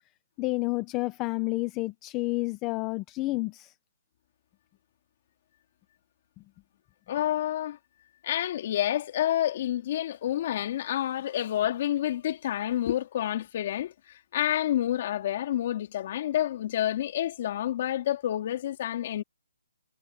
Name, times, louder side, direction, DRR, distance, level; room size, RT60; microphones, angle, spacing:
voice 1, 0.4-3.7, left 22 dB, 15° left, 0.8 m, -30 dB
voice 2, 7.1-7.8 8.2-19.2, left 12 dB, 30° left, 4.1 m, -29 dB
hypercardioid pair, 175°, 0 cm